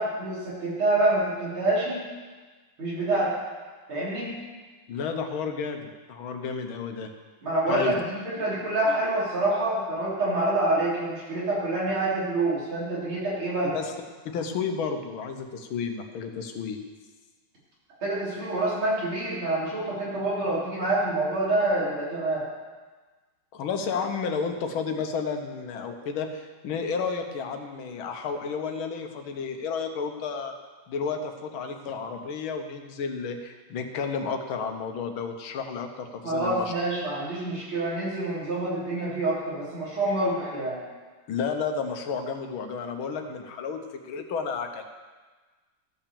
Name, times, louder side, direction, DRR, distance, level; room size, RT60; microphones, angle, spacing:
voice 1, 0.0-2.0 2.8-3.3 3.9-4.3 7.4-13.7 18.0-22.5 36.2-40.8, right 2 dB, 85° right, -7 dB, 4.5 m, -27 dB
voice 2, 4.9-7.1 7.7-7.9 13.7-13.9 14.2-16.8 23.5-30.5 30.9-36.7 41.3-44.8, left 5 dB, 80° left, 6 dB, 1.8 m, -32 dB
14.0 x 5.8 x 6.9 m, 1.4 s
omnidirectional pair, 2.2 m